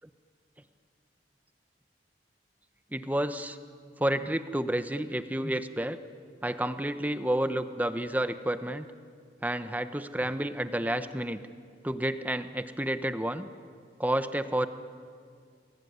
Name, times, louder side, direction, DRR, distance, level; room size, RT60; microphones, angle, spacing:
voice 1, 2.9-3.6 4.0-6.0 6.4-8.9 9.4-11.4 11.8-13.5 14.0-14.7, right 1 dB, 10° right, 10 dB, 1.0 m, -30 dB
28.5 x 21.0 x 9.5 m, 2.2 s
head